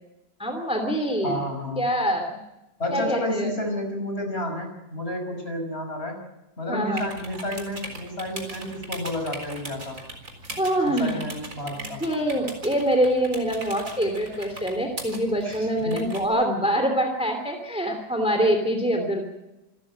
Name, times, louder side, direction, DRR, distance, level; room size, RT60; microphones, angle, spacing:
voice 1, 0.4-1.4 1.8-2.3 2.9-3.5 6.7-7.0 10.6-11.2 11.8-19.3, equal, 5° right, 5 dB, 2.8 m, -25 dB
voice 2, 1.2-1.9 2.8-6.2 6.6-10.0 10.8-12.0 15.4-16.2, left 1 dB, 30° left, 4 dB, 6.1 m, -31 dB
sound 1, 7.0-16.3, right 2 dB, 45° right, 4.4 m, -40 dB
27.0 x 14.5 x 8.9 m, 0.97 s
omnidirectional pair, 2.0 m